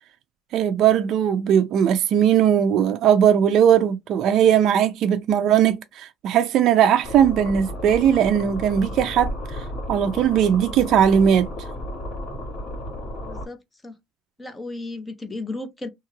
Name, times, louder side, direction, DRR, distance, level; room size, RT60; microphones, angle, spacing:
voice 1, 0.5-11.5, right 9 dB, 50° right, 0.3 m, -19 dB
sound 1, 7.0-13.5, left 1 dB, 35° left, 1.6 m, -33 dB
voice 2, 13.2-13.9 14.4-15.9, left 2 dB, 10° left, 0.6 m, -34 dB
2.8 x 2.3 x 3.0 m
cardioid pair, 150°, 0 cm